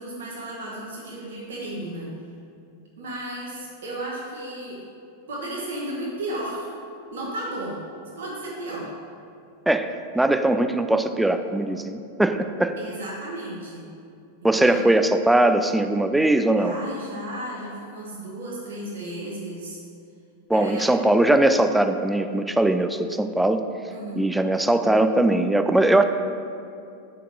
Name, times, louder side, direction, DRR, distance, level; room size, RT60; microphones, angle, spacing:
voice 1, 0.0-2.2 3.0-4.8 5.3-6.7 7.1-7.8 8.2-8.9 12.8-13.9 14.4-14.9 16.6-19.8 20.5-21.0 23.9-24.3, right 1 dB, 60° right, -5 dB, 1.3 m, -34 dB
voice 2, 9.7-12.7 14.4-16.8 20.5-23.6 24.2-26.0, right 1 dB, 5° right, 8 dB, 0.3 m, -20 dB
5.3 x 4.5 x 6.2 m, 2.5 s
figure-of-eight pair, 90°, 0 cm